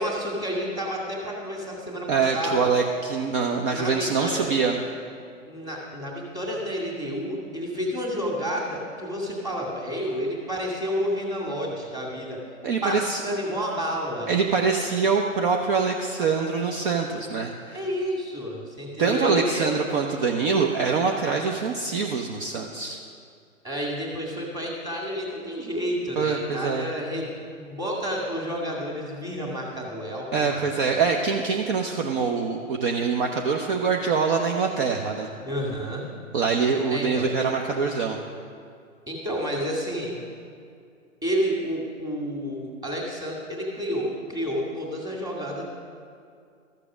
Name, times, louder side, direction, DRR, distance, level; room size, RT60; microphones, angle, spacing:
voice 1, 0.0-2.7 3.7-4.5 5.5-12.4 12.8-14.3 17.7-19.7 23.6-31.1 35.4-36.1 36.9-37.3 39.1-40.2 41.2-45.6, equal, 10° right, -4 dB, 2.1 m, -30 dB
voice 2, 2.1-4.8 12.6-13.2 14.3-17.8 19.0-23.0 26.2-26.9 30.3-35.3 36.3-38.2, right 5 dB, 40° right, 2 dB, 0.8 m, -24 dB
13.5 x 6.8 x 6.2 m, 2.4 s
hypercardioid pair, 130°, 40 cm